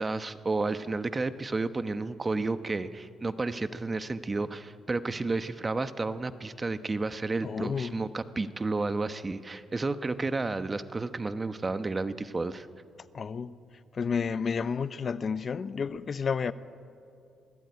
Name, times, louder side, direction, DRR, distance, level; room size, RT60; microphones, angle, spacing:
voice 1, 0.0-12.7, right 3 dB, 25° right, 1.1 m, -31 dB
voice 2, 7.4-8.0 13.1-13.6 13.9-16.5, left 6 dB, 45° left, 0.8 m, -31 dB
27.0 x 18.5 x 9.5 m
cardioid pair, 90°, 0 cm